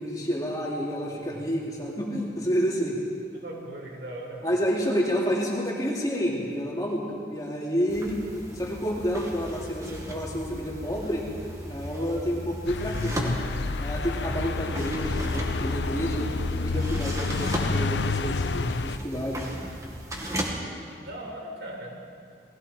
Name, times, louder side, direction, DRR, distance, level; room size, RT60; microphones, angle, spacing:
voice 1, 0.0-2.9 4.4-8.2 8.5-11.2 11.7-13.4 13.8-16.3 16.6-19.4, equal, 20° left, -4 dB, 3.3 m, -29 dB
voice 2, 3.3-4.6 12.9-13.1 20.9-22.0, right 1 dB, 85° right, -1 dB, 5.0 m, -39 dB
sound 1, 7.9-20.5, right 1 dB, 20° right, 2.1 m, -37 dB
sound 2, 12.7-19.0, left 3 dB, 85° left, 0.7 m, -29 dB
29.0 x 19.5 x 4.6 m, 2.3 s
head